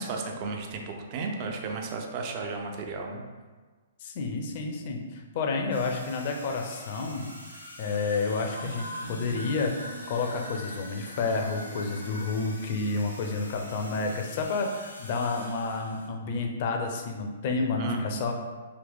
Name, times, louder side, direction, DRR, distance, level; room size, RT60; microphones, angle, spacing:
voice 1, 0.0-3.2 17.8-18.3, right 3 dB, 35° right, 2 dB, 0.5 m, -34 dB
voice 2, 4.0-18.3, left 3 dB, 40° left, 3 dB, 0.5 m, -30 dB
sound 1, 5.7-16.1, left 1 dB, 85° left, 0.8 m, -46 dB
space signals, 8.5-13.9 14.1-14.2, right 1 dB, 85° right, 0.6 m, -42 dB
3.9 x 2.7 x 3.4 m, 1.4 s
figure-of-eight pair, 115°, 0 cm